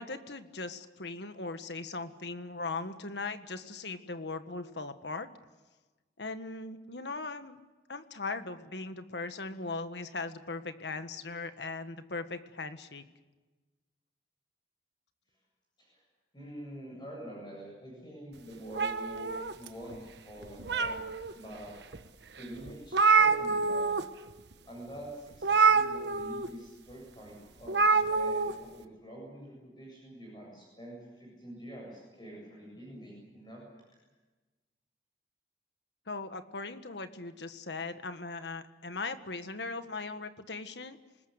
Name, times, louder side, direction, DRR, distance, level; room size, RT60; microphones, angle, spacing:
voice 1, 0.0-5.3 6.2-7.6 7.9-13.0 36.1-41.0, left 3 dB, 75° left, 9 dB, 1.6 m, -39 dB
voice 2, 16.3-21.0 21.3-21.7 22.4-23.9 24.7-33.6, right 1 dB, 25° left, -3 dB, 7.7 m, -46 dB
sound 1, 18.7-20.0 20.4-21.3 21.9-22.0 22.4-22.5 22.7-24.0 24.3-24.5 25.4-26.5 27.7-28.5, right 4 dB, 75° right, 1.2 m, -26 dB
26.5 x 20.0 x 8.1 m, 1.2 s
head